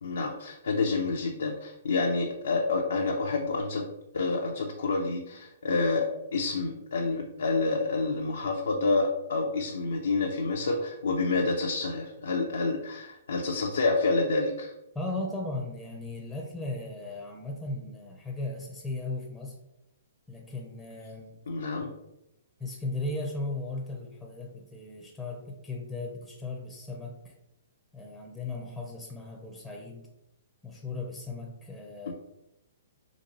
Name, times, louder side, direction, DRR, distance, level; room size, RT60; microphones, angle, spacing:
voice 1, 0.0-3.9 4.1-14.7 21.5-21.9 32.1-32.2, left 3 dB, 80° left, 1 dB, 0.4 m, -28 dB
voice 2, 14.9-19.6 20.3-21.4 22.6-27.3 27.9-30.1 30.6-32.1, left 2 dB, 5° left, 0 dB, 0.5 m, -37 dB
3.9 x 2.5 x 2.8 m, 0.88 s
hypercardioid pair, 135°, 0 cm